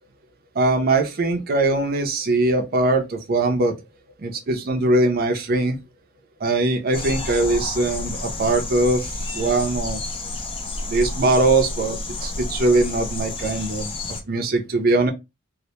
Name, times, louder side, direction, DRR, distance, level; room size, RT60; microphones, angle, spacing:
voice 1, 0.6-3.8 4.2-5.8 6.4-10.0 10.9-13.9 14.3-15.1, right 2 dB, 45° right, 0.5 m, -21 dB
sound 1, 6.9-14.2, left 2 dB, 25° left, 0.4 m, -30 dB
2.1 x 2.1 x 2.8 m
head